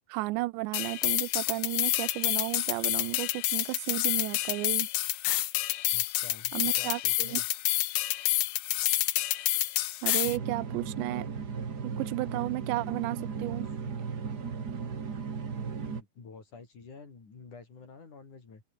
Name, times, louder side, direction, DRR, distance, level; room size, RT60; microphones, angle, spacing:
voice 1, 0.1-4.9 6.5-7.4 10.0-11.3 11.8-13.7, right 21 dB, 85° right, 3.0 m, -33 dB
sound 1, 0.7-10.4, left 16 dB, 75° left, 2.6 m, -29 dB
voice 2, 5.9-7.5 10.8-10.9 13.8-13.9 15.9-18.6, left 4 dB, 45° left, 6.9 m, -49 dB
sound 2, 10.2-16.0, right 6 dB, 45° right, 1.3 m, -36 dB
open air
omnidirectional pair, 5.0 m